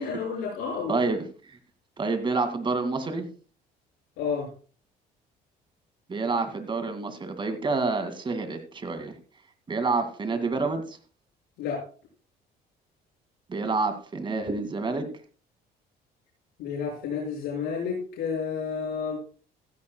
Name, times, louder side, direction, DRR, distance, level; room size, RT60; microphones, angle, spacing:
voice 1, 0.0-1.0 4.2-4.5 11.6-11.9 16.6-19.2, left 6 dB, 90° left, -3 dB, 6.0 m, -30 dB
voice 2, 0.9-1.6 2.0-3.3 6.1-9.1 9.7-11.0 13.5-15.1, right 3 dB, 30° right, 8 dB, 2.2 m, -28 dB
16.0 x 14.5 x 2.3 m, 0.39 s
cardioid pair, 110°, 17 cm